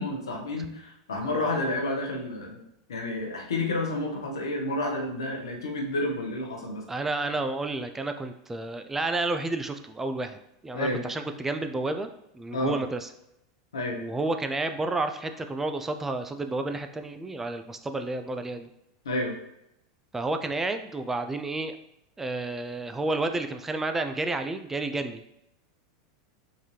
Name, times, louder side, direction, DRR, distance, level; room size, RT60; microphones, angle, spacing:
voice 1, 0.0-2.6 2.9-6.8 10.7-11.0 12.5-12.7 13.7-14.0 19.0-19.3, left 2 dB, 90° left, 1 dB, 0.8 m, -30 dB
voice 2, 1.2-1.6 6.9-12.1 12.3-13.1 13.9-18.7 20.1-21.8 22.2-25.2, right 2 dB, 15° right, 7 dB, 0.3 m, -31 dB
3.8 x 2.6 x 3.1 m, 0.81 s
hypercardioid pair, 100°, 2 cm